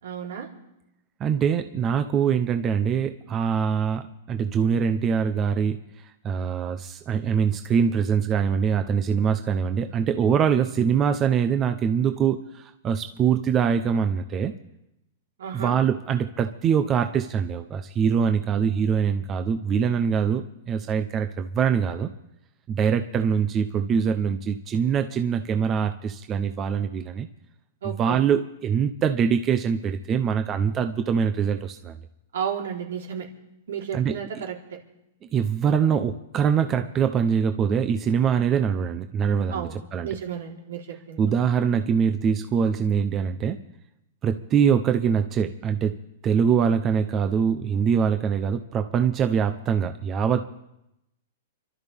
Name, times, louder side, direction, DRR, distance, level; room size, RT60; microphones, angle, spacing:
voice 1, 0.0-0.5 15.4-15.8 27.8-28.2 32.3-33.3 33.7-34.6 39.5-41.3, right 8 dB, 80° right, -1 dB, 3.9 m, -32 dB
voice 2, 1.2-5.8 6.2-14.5 15.5-22.1 22.7-27.3 27.8-32.0 33.9-34.4 35.3-40.2 41.2-43.6 44.2-46.0 46.2-50.4, right 7 dB, 25° right, 7 dB, 0.8 m, -23 dB
29.5 x 12.5 x 3.6 m, 0.88 s
hypercardioid pair, 145°, 0 cm